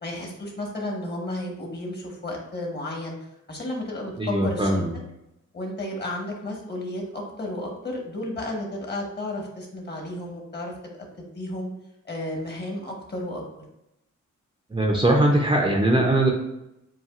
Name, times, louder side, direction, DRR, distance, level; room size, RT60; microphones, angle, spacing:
voice 1, 0.0-3.2 3.5-4.8 5.5-10.7 11.2-11.7 12.0-13.5, left 1 dB, 35° left, 0 dB, 1.4 m, -32 dB
voice 2, 4.2-4.9 14.7-16.3, right 1 dB, 15° right, 0 dB, 0.7 m, -21 dB
7.3 x 2.5 x 2.5 m, 0.87 s
cardioid pair, 75°, 31 cm